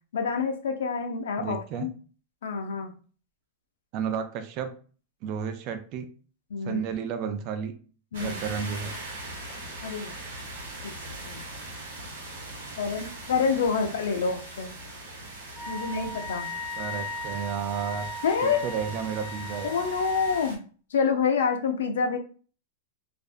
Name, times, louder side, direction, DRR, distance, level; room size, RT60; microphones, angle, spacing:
voice 1, 0.1-1.9 2.4-2.9 6.5-6.8 8.1-8.4 9.8-10.1 10.8-10.9 11.3-11.4 12.8-14.7 15.7-16.5 18.2-18.6 19.6-20.6 20.9-22.2, left 5 dB, 90° left, 5 dB, 0.5 m, -27 dB
voice 2, 1.4-1.9 3.9-4.7 5.2-6.1 6.6-7.7 8.2-8.9 16.8-18.1 18.4-19.9, right 7 dB, 40° right, 7 dB, 0.4 m, -32 dB
sound 1, 8.1-20.6, right 2 dB, 80° right, 0.9 m, -41 dB
Wind instrument woodwind instrument, 15.6-20.5, left 1 dB, 30° left, 0.4 m, -37 dB
2.5 x 2.0 x 2.4 m, 0.39 s
supercardioid pair, 145°, 0 cm